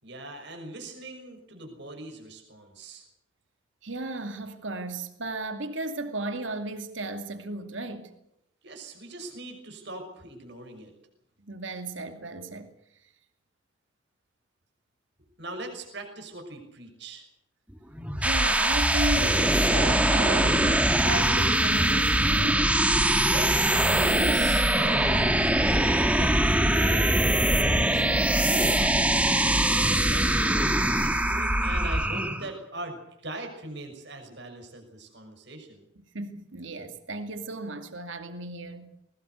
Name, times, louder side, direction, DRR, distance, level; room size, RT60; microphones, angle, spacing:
voice 1, 0.0-3.0 8.6-10.9 15.4-17.2 23.2-29.2 30.1-35.8, right 2 dB, 60° right, 6.0 m, -41 dB
voice 2, 3.8-8.1 11.4-12.7 18.2-22.8 36.1-38.9, right 2 dB, 85° right, 2.5 m, -34 dB
sound 1, 17.9-32.5, right 1 dB, 5° right, 1.5 m, -22 dB
21.5 x 20.0 x 8.2 m
head